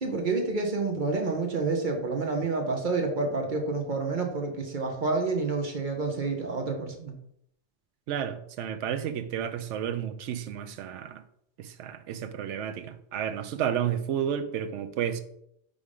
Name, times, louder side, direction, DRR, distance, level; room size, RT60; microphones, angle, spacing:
voice 1, 0.0-7.1, right 3 dB, 45° right, 1.1 m, -29 dB
voice 2, 8.1-11.2 11.6-15.2, right 9 dB, 85° right, 0.9 m, -31 dB
5.3 x 3.6 x 4.9 m
omnidirectional pair, 1.2 m